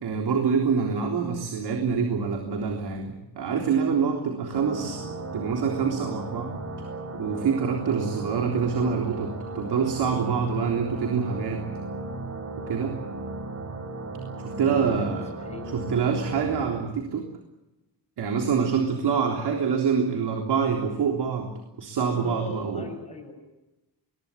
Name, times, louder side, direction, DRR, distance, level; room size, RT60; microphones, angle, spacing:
voice 1, 0.0-6.5 7.1-11.6 12.6-13.0 14.4-15.3 15.7-17.3 18.2-21.5 21.8-22.9, right 6 dB, 65° right, 2 dB, 3.7 m, -26 dB
sound 1, 4.5-16.8, right 2 dB, 35° right, 5.3 m, -36 dB
voice 2, 14.5-15.8 19.2-19.6 22.2-23.3, left 3 dB, 15° left, 0 dB, 7.5 m, -40 dB
23.0 x 21.5 x 8.9 m, 0.98 s
cardioid pair, 125°, 42 cm